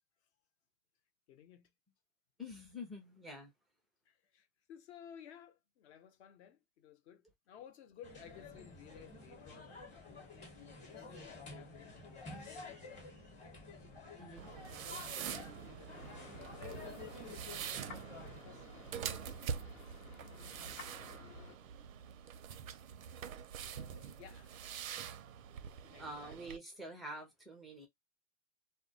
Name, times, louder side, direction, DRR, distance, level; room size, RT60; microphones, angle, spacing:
voice 1, 1.3-1.7 4.1-9.7 10.8-12.7 12.9-13.4 14.7-17.2 18.1-20.0 20.7-21.2 23.6-24.6 25.8-26.4, left 9 dB, 55° left, 0.7 m, -58 dB
voice 2, 2.4-3.5 14.2-14.5 26.0-27.9, equal, ahead, 0.3 m, -47 dB
sound 1, 8.0-18.4, left 3 dB, 15° left, 0.9 m, -51 dB
sound 2, 14.4-26.6, right 8 dB, 85° right, 0.5 m, -45 dB
sound 3, 15.9-21.6, left 6 dB, 90° left, 0.9 m, -55 dB
2.2 x 2.1 x 2.6 m
hypercardioid pair, 120°, 40 cm